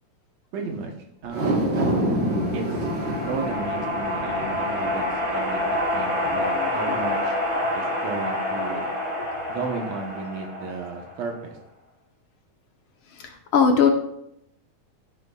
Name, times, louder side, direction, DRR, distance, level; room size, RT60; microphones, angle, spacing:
voice 1, 0.5-0.9 1.2-1.7 2.5-2.9 3.2-5.6 5.9-7.4 7.7-8.9 9.5-11.6, right 4 dB, 65° right, 2 dB, 2.4 m, -34 dB
sound 1, 1.2-7.7 8.2-8.3, right 1 dB, 45° right, 1.9 m, -28 dB
sound 2, 1.8-11.4, left 1 dB, 10° right, 4.5 m, -28 dB
voice 2, 6.3-6.7 6.9-7.0 8.7-8.8 13.2-13.9, left 6 dB, 60° left, 4 dB, 1.4 m, -22 dB
16.0 x 8.2 x 2.4 m, 0.76 s
omnidirectional pair, 3.5 m